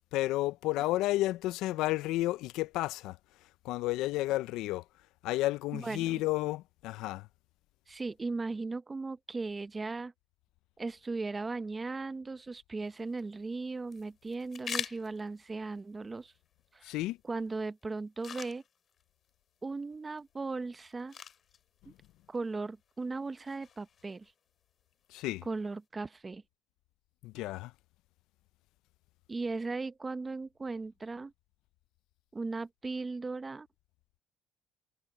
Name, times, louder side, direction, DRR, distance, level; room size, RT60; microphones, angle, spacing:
voice 1, 0.1-3.2 3.6-4.8 5.2-7.3 16.8-17.2 25.1-25.5 27.2-27.7, left 17 dB, 80° left, 0.4 m, -31 dB
voice 2, 5.7-6.2 7.9-10.1 10.8-16.3 16.7-16.9 17.2-18.6 19.6-21.2 21.9-22.0 22.3-24.3 25.4-26.4 29.3-31.3 32.3-33.7, right 3 dB, 20° right, 0.7 m, -37 dB
sound 1, 12.8-25.9, left 7 dB, 40° left, 4.4 m, -48 dB
cardioid pair, 135°, 0 cm